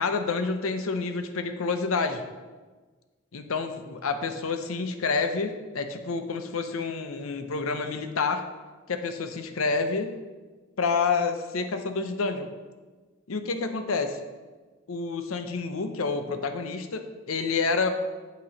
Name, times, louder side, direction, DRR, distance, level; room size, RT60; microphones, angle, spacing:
voice 1, 0.0-2.2 3.3-8.4 8.9-10.1 10.8-12.5 13.3-14.2 14.9-17.9, left 4 dB, 85° left, 7 dB, 0.7 m, -28 dB
8.6 x 3.0 x 6.3 m, 1.3 s
head